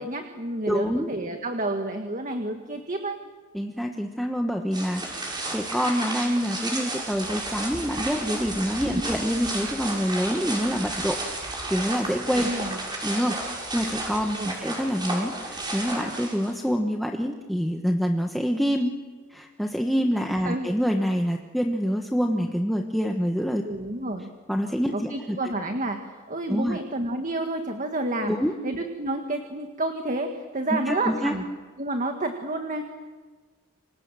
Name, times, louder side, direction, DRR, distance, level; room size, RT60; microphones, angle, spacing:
voice 1, 0.0-3.2 8.9-9.0 12.4-12.8 14.4-14.6 20.4-20.7 23.6-24.3 24.9-26.0 26.3-28.4 28.6-31.4 31.8-32.9, right 2 dB, 35° right, 5 dB, 1.8 m, -30 dB
voice 2, 0.6-1.1 3.5-5.0 5.5-11.2 11.7-12.5 13.0-13.4 13.7-18.9 19.3-23.6 24.5-25.4 26.5-26.8 28.3-28.5 30.7-31.3, equal, ahead, 2 dB, 1.2 m, -26 dB
sound 1, 4.7-16.7, right 2 dB, 20° right, 6.6 m, -32 dB
28.5 x 26.0 x 7.7 m, 1.4 s
head